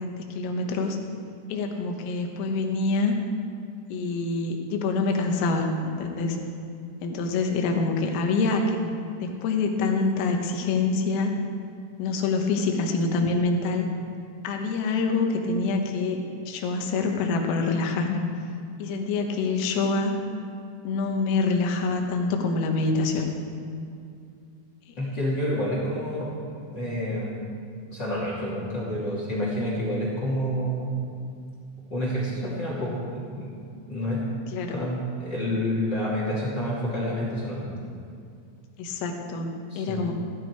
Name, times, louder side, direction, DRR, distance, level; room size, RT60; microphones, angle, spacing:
voice 1, 0.0-1.0 1.5-3.2 3.9-6.4 7.0-8.8 9.2-11.3 12.0-13.9 14.4-18.2 18.8-20.1 20.9-23.3 34.5-34.8 38.8-40.1, left 3 dB, 90° left, 3 dB, 4.0 m, -26 dB
voice 2, 25.0-27.4 27.9-31.0 31.9-33.5 33.9-34.2 34.7-37.7 39.7-40.0, equal, 30° left, -6 dB, 2.4 m, -29 dB
16.0 x 13.5 x 4.7 m, 2.4 s
omnidirectional pair, 5.7 m